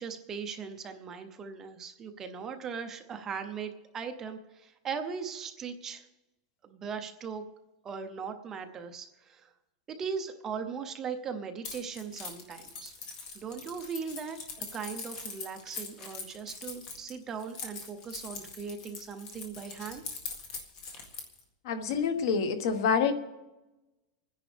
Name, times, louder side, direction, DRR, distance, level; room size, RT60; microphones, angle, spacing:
voice 1, 0.0-6.1 6.6-7.4 7.8-9.5 9.9-12.9 13.3-20.0, right 6 dB, 15° right, 6 dB, 0.7 m, -39 dB
Keys jangling, 11.6-21.4, left 4 dB, 30° left, 1.8 m, -42 dB
voice 2, 21.6-23.1, left 6 dB, 60° left, 8 dB, 1.3 m, -27 dB
26.0 x 10.0 x 3.4 m, 1.0 s
supercardioid pair, 175°, 2 cm